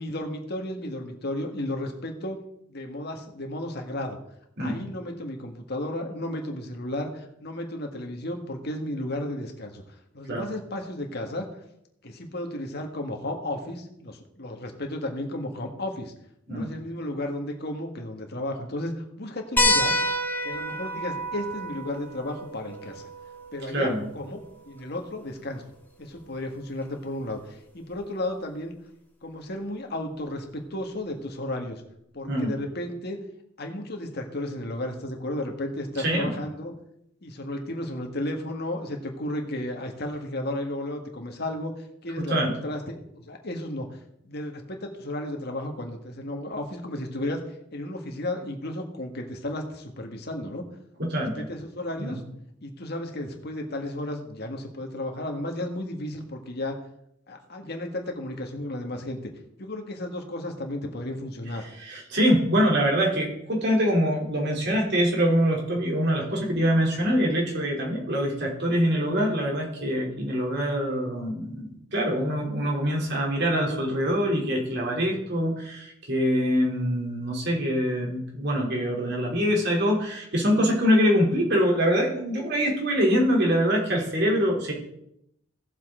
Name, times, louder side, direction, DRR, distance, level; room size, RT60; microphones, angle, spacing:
voice 1, 0.0-2.4 2.7-4.2 4.6-9.8 10.1-11.5 12.0-16.1 16.5-20.0 20.4-23.1 23.5-25.6 26.0-28.7 29.2-31.8 32.1-33.2 33.6-36.7 37.2-41.7 42.0-43.9 44.2-47.4 47.7-50.6 51.2-52.2 52.6-56.8 57.3-59.2 59.6-61.7, left 1 dB, 55° left, 3 dB, 1.8 m, -33 dB
sound 1, 19.6-24.6 26.2-26.3 27.9-28.0, left 1 dB, 10° left, 2.3 m, -28 dB
voice 2, 23.7-24.0 32.3-32.5 36.0-36.3 42.3-42.5 51.0-51.5 52.0-52.1 61.8-84.7, equal, 60° right, -1 dB, 3.4 m, -24 dB
17.0 x 7.4 x 3.8 m, 0.76 s
head